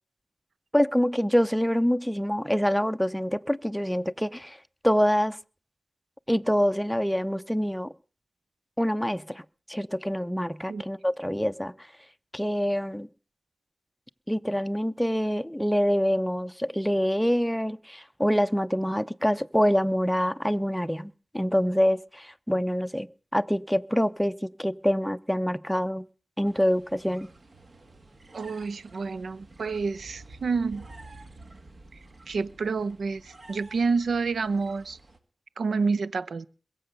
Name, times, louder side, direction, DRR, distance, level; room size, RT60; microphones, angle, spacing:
voice 1, 0.7-4.6 4.8-5.4 6.3-7.9 8.8-9.4 9.7-11.7 12.3-13.1 14.3-23.1 23.3-26.0 26.4-27.3, equal, ahead, 11 dB, 0.7 m, -25 dB
sound 1, 26.4-35.2, right 2 dB, 50° right, 2.0 m, -50 dB
voice 2, 28.3-30.9 32.3-35.0 35.6-36.5, right 4 dB, 85° right, 18 dB, 0.7 m, -28 dB
22.0 x 7.7 x 6.7 m, 0.39 s
wide cardioid pair, 80°, 0 cm